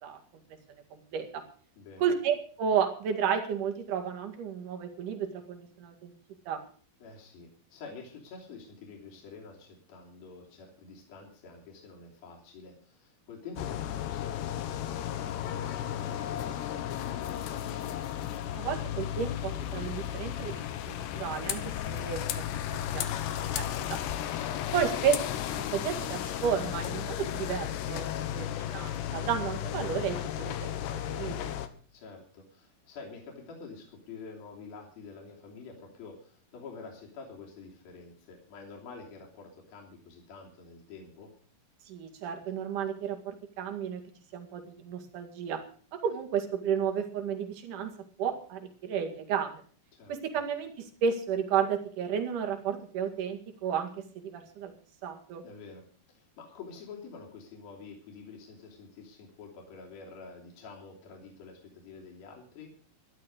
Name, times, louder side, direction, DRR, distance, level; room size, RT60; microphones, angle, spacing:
voice 1, 0.9-1.4 2.0-6.1 6.5-6.6 18.5-23.1 23.4-24.0 24.7-25.1 25.5-31.5 41.9-44.0 44.3-45.6 45.9-47.9 48.2-49.6 50.1-54.7 55.0-55.4, right 7 dB, 55° right, 4 dB, 3.4 m, -32 dB
voice 2, 1.8-2.1 7.0-18.0 31.9-41.3 49.9-50.1 55.4-62.7, left 4 dB, 65° left, -1 dB, 4.8 m, -48 dB
sound 1, 13.6-31.7, left 11 dB, 90° left, 3.2 m, -34 dB
13.0 x 12.0 x 6.5 m, 0.43 s
omnidirectional pair, 4.7 m